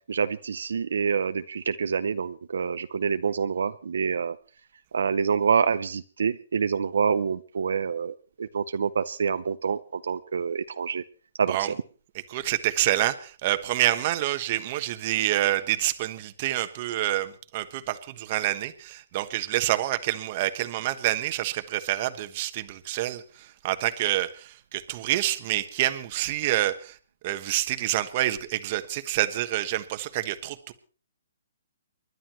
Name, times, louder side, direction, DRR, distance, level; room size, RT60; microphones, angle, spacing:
voice 1, 0.1-4.4 4.9-11.0 11.4-11.6, right 6 dB, 80° right, 11 dB, 0.7 m, -27 dB
voice 2, 12.3-27.0 27.2-30.7, right 14 dB, 35° right, 10 dB, 1.2 m, -27 dB
29.5 x 11.0 x 3.1 m, 0.40 s
hypercardioid pair, 155°, 0 cm